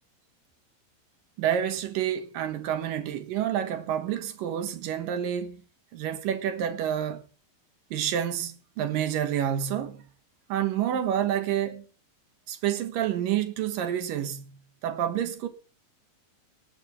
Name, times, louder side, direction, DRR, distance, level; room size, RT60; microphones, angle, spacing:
voice 1, 1.4-5.6 5.9-7.2 7.9-10.0 10.5-11.9 12.5-15.5, right 10 dB, 75° right, 3.0 m, -29 dB
18.5 x 6.8 x 5.7 m
omnidirectional pair, 4.0 m